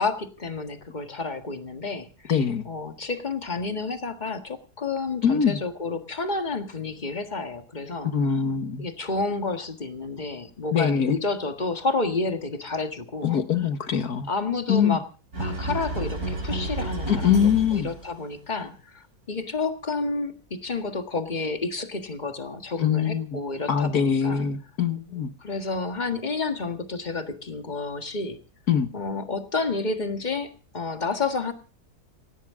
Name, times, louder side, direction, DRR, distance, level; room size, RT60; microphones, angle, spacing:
voice 1, 0.0-2.1 2.7-8.1 8.8-13.4 14.3-15.0 15.4-24.5 25.4-28.4 28.9-31.5, left 3 dB, 30° left, 6 dB, 1.7 m, -30 dB
voice 2, 2.3-2.7 5.2-5.6 8.0-8.8 10.7-11.2 13.2-14.3 14.7-15.0 17.1-17.9 22.8-23.4 23.7-25.3 28.7-28.9, left 7 dB, 70° left, 9 dB, 2.0 m, -23 dB
sound 1, 15.3-18.1, right 2 dB, 65° right, 5.8 m, -30 dB
17.5 x 17.0 x 3.7 m, 0.36 s
omnidirectional pair, 1.7 m